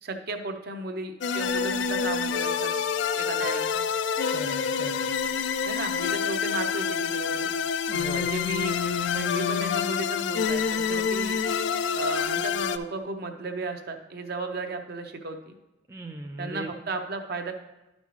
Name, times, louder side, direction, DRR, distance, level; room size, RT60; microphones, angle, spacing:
voice 1, 0.0-2.7 3.1-3.8 5.7-7.6 8.1-8.8 9.1-11.4 11.9-15.5 16.4-17.5, right 2 dB, 55° right, 6 dB, 0.8 m, -34 dB
sound 1, 1.2-12.8, left 6 dB, 65° left, 0.3 m, -27 dB
voice 2, 4.3-5.1 7.9-8.3 15.9-16.7, right 2 dB, 15° right, 3 dB, 0.3 m, -38 dB
11.0 x 5.4 x 3.1 m, 0.99 s
head